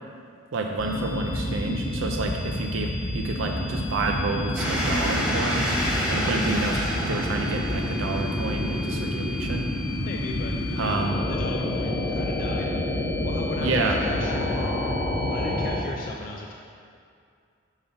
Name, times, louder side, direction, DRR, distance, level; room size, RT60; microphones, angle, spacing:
voice 1, 0.5-5.7 6.1-9.7 10.8-11.2 13.6-14.0, right 3 dB, 75° right, 2 dB, 0.4 m, -29 dB
sound 1, 0.8-15.8, left 1 dB, 15° left, 1.2 m, -28 dB
sound 2, 4.6-11.0, equal, 5° right, 1.1 m, -30 dB
voice 2, 10.0-12.9 13.2-14.7 15.3-16.5, left 2 dB, 45° left, -1 dB, 0.3 m, -36 dB
5.3 x 4.0 x 5.6 m, 2.4 s
head